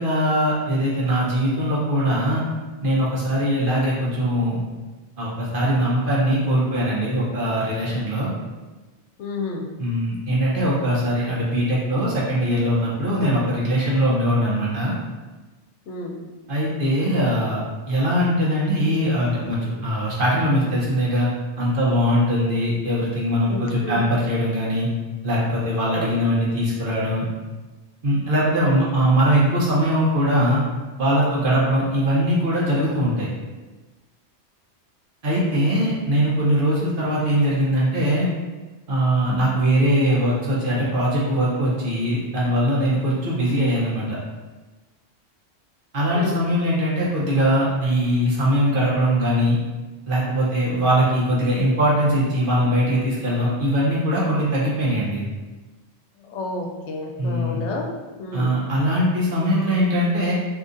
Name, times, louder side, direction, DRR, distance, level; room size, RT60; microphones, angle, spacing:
voice 1, 0.0-2.4 2.8-4.6 5.2-8.3 9.8-14.9 16.5-21.3 21.6-24.9 25.2-27.3 28.0-30.6 31.0-33.3 35.2-38.3 38.9-44.2 45.9-49.6 50.1-55.3 57.2-57.6 58.3-60.3, equal, 55° right, -6 dB, 1.0 m, -21 dB
voice 2, 9.2-9.6 15.9-16.2 23.5-24.0 25.9-26.2 46.1-46.4 56.3-57.9 58.2-58.5, left 3 dB, 80° left, 2 dB, 0.9 m, -30 dB
3.9 x 2.8 x 2.5 m, 1.2 s
omnidirectional pair, 1.2 m